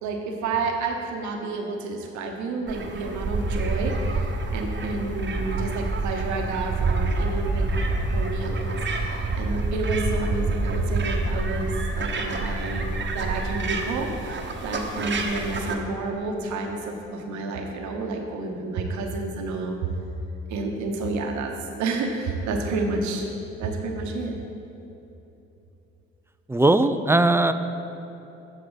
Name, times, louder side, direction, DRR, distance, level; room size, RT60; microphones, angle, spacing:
voice 1, 0.0-7.7 8.0-19.9 20.5-23.3 23.6-24.4, right 3 dB, 70° right, 3 dB, 1.0 m, -30 dB
sound 1, 2.7-15.7, right 3 dB, 40° right, 1.0 m, -27 dB
voice 2, 26.5-27.5, right 2 dB, 10° right, 9 dB, 0.4 m, -19 dB
13.5 x 4.7 x 4.0 m, 2.9 s
hypercardioid pair, 50°, 30 cm